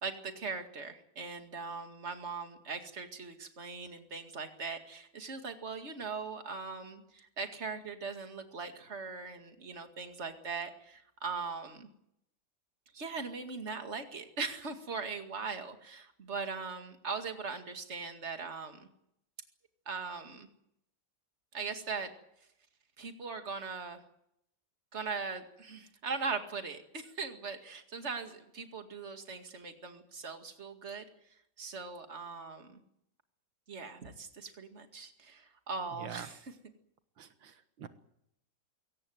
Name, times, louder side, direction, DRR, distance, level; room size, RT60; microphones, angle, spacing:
voice 1, 0.0-11.9 12.9-18.9 19.9-20.5 21.5-22.1 23.0-24.0 24.9-31.0 31.6-32.8 33.7-36.4, right 4 dB, 35° right, 6 dB, 2.4 m, -40 dB
voice 2, 37.2-37.9, right 8 dB, 80° right, 10 dB, 2.0 m, -45 dB
23.0 x 17.5 x 9.4 m, 0.77 s
omnidirectional pair, 2.1 m